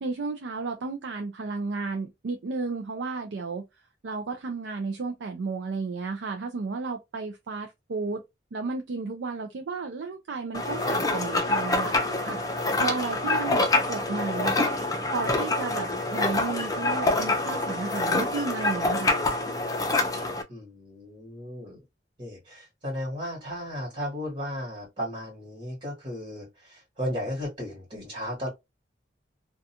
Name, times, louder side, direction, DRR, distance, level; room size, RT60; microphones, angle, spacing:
voice 1, 0.0-3.6 4.0-8.2 8.5-12.0 12.2-12.4 12.8-14.7 15.1-19.2, right 4 dB, 75° right, 0.4 m, -33 dB
sound 1, 10.5-20.4, left 2 dB, 20° left, 0.5 m, -26 dB
voice 2, 20.5-21.8 22.2-28.5, equal, 40° right, 1.3 m, -35 dB
2.4 x 2.3 x 2.7 m
head